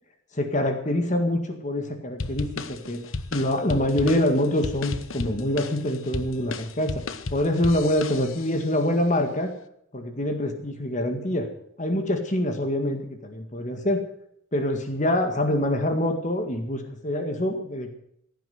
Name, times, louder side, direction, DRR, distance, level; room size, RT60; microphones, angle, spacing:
voice 1, 0.3-3.0 3.3-7.0 7.3-9.5 9.9-11.5 11.8-14.0 14.5-17.9, left 1 dB, 35° left, 6 dB, 1.9 m, -25 dB
sound 1, 2.2-8.6, left 3 dB, 85° left, 1.0 m, -34 dB
16.5 x 9.3 x 7.9 m, 0.70 s
head